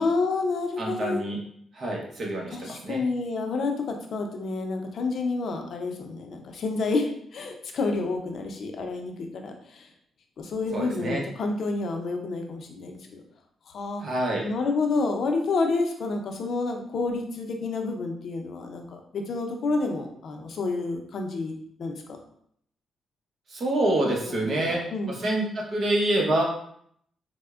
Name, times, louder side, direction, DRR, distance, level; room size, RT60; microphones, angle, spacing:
voice 1, 0.0-1.2 2.5-9.9 10.4-13.2 13.7-14.0 14.4-21.5 21.8-22.0 24.3-25.2, left 3 dB, 65° left, 3 dB, 0.5 m, -29 dB
voice 2, 0.8-1.4 1.7-3.0 10.7-11.2 14.0-14.5 23.5-24.8 25.2-26.4, right 1 dB, 55° right, -1 dB, 0.8 m, -26 dB
4.2 x 2.1 x 2.3 m, 0.67 s
cardioid pair, 80°, 0 cm